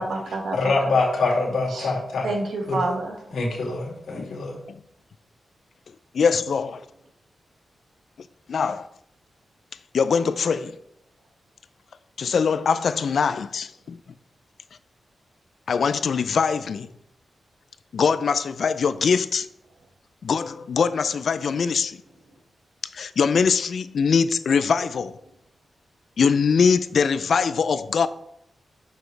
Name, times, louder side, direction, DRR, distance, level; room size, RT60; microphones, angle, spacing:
voice 1, 0.0-0.9 1.7-1.9 2.2-3.4, right 2 dB, 80° right, 1 dB, 1.7 m, -29 dB
voice 2, 0.5-2.3 2.7-2.8 3.3-4.6, left 3 dB, 90° left, -2 dB, 2.3 m, -24 dB
voice 3, 6.1-6.8 8.5-8.9 9.9-10.8 12.2-14.0 15.7-16.9 17.9-19.5 20.2-22.0 22.9-25.2 26.2-28.1, left 6 dB, 65° left, 13 dB, 0.4 m, -22 dB
7.0 x 6.2 x 3.3 m, 0.76 s
wide cardioid pair, 110°, 0 cm